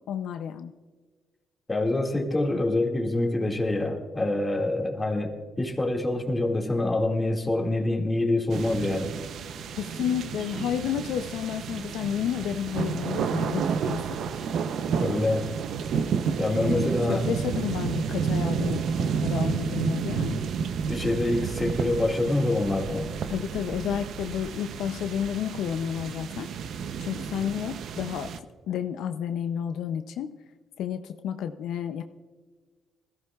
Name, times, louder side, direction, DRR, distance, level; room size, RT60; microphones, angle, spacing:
voice 1, 0.1-0.7 9.8-14.2 16.6-20.4 23.3-26.5 27.0-28.3 28.7-30.3 30.8-32.0, left 9 dB, 80° left, 8 dB, 0.5 m, -31 dB
voice 2, 1.7-9.1 15.0-15.5 16.4-17.3 20.9-23.1, left 2 dB, 20° left, 1 dB, 2.0 m, -26 dB
sound 1, 8.5-28.4, right 6 dB, 70° right, 0.6 m, -31 dB
20.5 x 14.0 x 2.3 m, 1.5 s
cardioid pair, 90°, 0 cm